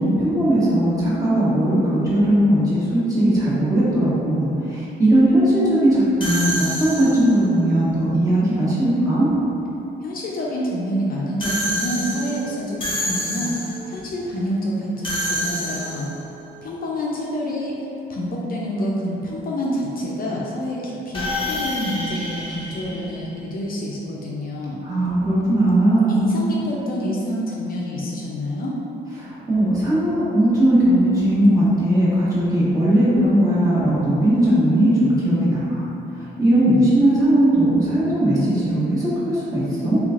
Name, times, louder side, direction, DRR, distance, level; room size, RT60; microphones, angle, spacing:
voice 1, 0.0-9.3 24.8-26.2 29.2-35.8 36.4-40.0, right 1 dB, 15° right, -10 dB, 1.2 m, -18 dB
sound 1, 6.2-7.5 11.4-13.9 15.0-16.3 21.1-23.7, equal, 25° left, 0.9 m, -28 dB
voice 2, 10.0-16.1 16.6-24.8 26.1-28.7, equal, 45° left, -4 dB, 0.5 m, -27 dB
3.4 x 3.0 x 2.4 m, 2.8 s
cardioid pair, 90°, 20 cm